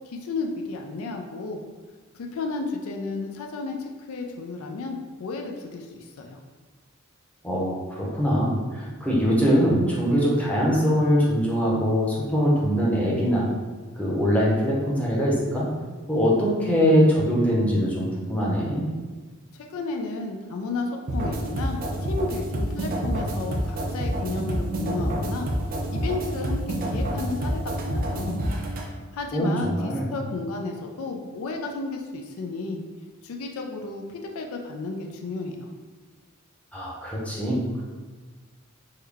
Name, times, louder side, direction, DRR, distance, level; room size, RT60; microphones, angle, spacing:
voice 1, 0.1-1.6 2.1-6.4 19.5-28.3 28.9-32.8 33.2-35.7, left 3 dB, 75° left, 2 dB, 0.4 m, -33 dB
voice 2, 7.4-13.4 14.0-15.7 16.1-18.8 29.3-30.1 36.7-37.8, equal, 5° left, -5 dB, 0.7 m, -22 dB
sound 1, 21.1-28.9, right 1 dB, 40° right, 0.4 m, -28 dB
3.7 x 2.1 x 3.4 m, 1.4 s
head